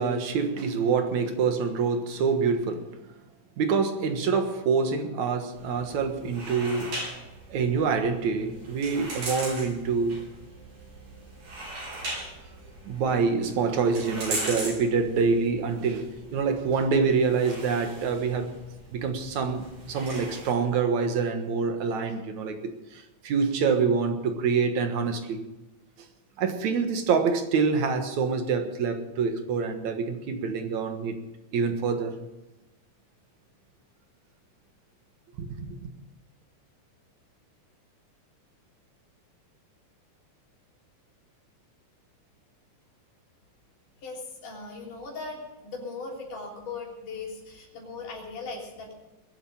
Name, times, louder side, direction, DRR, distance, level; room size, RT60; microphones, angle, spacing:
voice 1, 0.0-3.0 3.6-7.0 7.5-10.3 12.8-18.6 18.9-25.5 26.4-31.3 31.5-32.2 35.4-35.9, right 5 dB, 70° right, 2.7 m, -26 dB
sound 1, 5.5-20.5, right 2 dB, 85° right, 7.6 m, -39 dB
voice 2, 44.0-48.9, left 3 dB, 80° left, 5.0 m, -38 dB
21.0 x 8.0 x 7.2 m
omnidirectional pair, 3.7 m